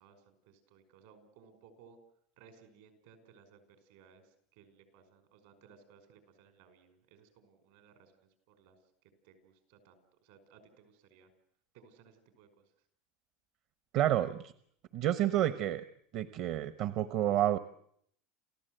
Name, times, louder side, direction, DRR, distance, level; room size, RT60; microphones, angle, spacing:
voice 1, 0.0-2.0 2.4-8.8 9.2-11.3 11.7-12.6, right 6 dB, 80° right, 8 dB, 5.3 m, -61 dB
voice 2, 13.9-14.5 14.9-15.8 16.1-17.6, right 12 dB, 55° right, 13 dB, 0.9 m, -29 dB
29.0 x 15.0 x 7.9 m, 0.68 s
supercardioid pair, 130°, 0 cm